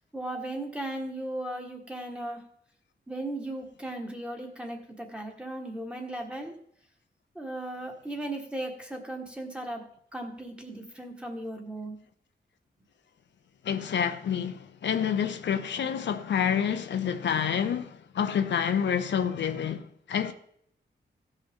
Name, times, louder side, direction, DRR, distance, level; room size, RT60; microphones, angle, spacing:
voice 1, 0.1-2.4 3.1-6.5 7.3-9.8 10.1-12.0, right 1 dB, 5° right, 1.5 m, -36 dB
voice 2, 13.6-20.3, left 8 dB, 90° left, 0.7 m, -28 dB
16.5 x 5.5 x 3.6 m
wide cardioid pair, 145°, 18 cm